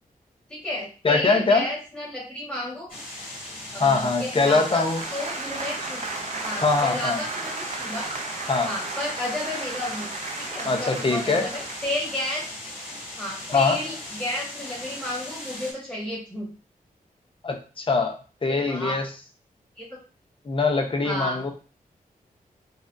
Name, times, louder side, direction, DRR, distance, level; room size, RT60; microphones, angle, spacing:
voice 1, 0.5-2.9 3.7-4.9 5.1-6.0 6.4-8.1 8.6-10.1 10.4-12.4 13.2-16.5 18.4-19.0 19.8-19.9 21.0-21.5, left 1 dB, 5° left, -5 dB, 1.5 m, -32 dB
voice 2, 1.0-1.7 3.8-5.0 6.6-7.2 8.5-8.7 10.6-11.5 13.5-13.8 17.4-19.1 20.5-21.5, left 4 dB, 35° left, 4 dB, 0.7 m, -22 dB
sound 1, 2.9-15.7, left 1 dB, 70° left, 1.8 m, -38 dB
sound 2, 4.2-12.2, right 4 dB, 50° right, 0.6 m, -35 dB
4.1 x 2.4 x 2.6 m, 0.35 s
wide cardioid pair, 95°, 15 cm